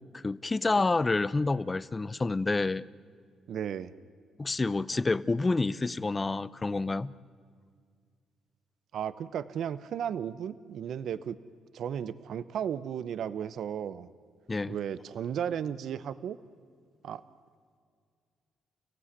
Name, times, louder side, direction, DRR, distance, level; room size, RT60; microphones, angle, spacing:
voice 1, 0.1-2.8 4.4-7.1 14.5-14.7, left 3 dB, 25° left, 19 dB, 0.6 m, -28 dB
voice 2, 3.5-3.9 8.9-11.4 11.7-14.1 14.7-16.4 17.0-17.2, right 8 dB, 70° right, 15 dB, 0.7 m, -34 dB
30.0 x 15.5 x 9.8 m, 2.1 s
cardioid pair, 90°, 0 cm